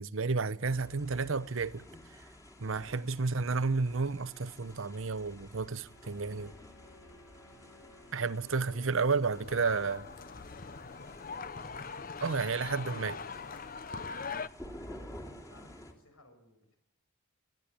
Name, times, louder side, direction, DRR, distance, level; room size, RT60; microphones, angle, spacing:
voice 1, 0.0-1.8 2.6-6.5 8.1-10.1 12.2-13.2, right 4 dB, 65° right, 0.8 m, -31 dB
sound 1, 0.7-15.9, left 1 dB, 15° left, 2.7 m, -52 dB
sound 2, 5.9-11.9, left 1 dB, 65° left, 7.2 m, -60 dB
voice 2, 8.2-9.2 10.2-10.7 15.3-16.8, left 1 dB, 85° left, 7.0 m, -60 dB
sound 3, 9.3-14.5, left 5 dB, 40° left, 0.7 m, -41 dB
20.0 x 14.0 x 10.0 m
head